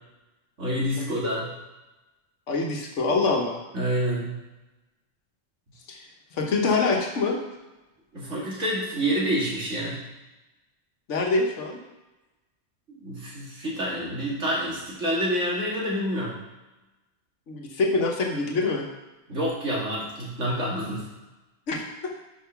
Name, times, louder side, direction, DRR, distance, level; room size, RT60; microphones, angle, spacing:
voice 1, 0.6-1.4 3.7-4.3 8.1-10.0 13.0-16.3 19.3-21.0, equal, 85° right, -6 dB, 2.7 m, -27 dB
voice 2, 2.5-3.6 5.9-6.0 6.3-7.4 11.1-11.8 17.5-18.8 21.7-22.1, left 3 dB, 80° left, 1 dB, 1.5 m, -25 dB
5.7 x 5.6 x 5.8 m, 1.1 s
omnidirectional pair, 1.2 m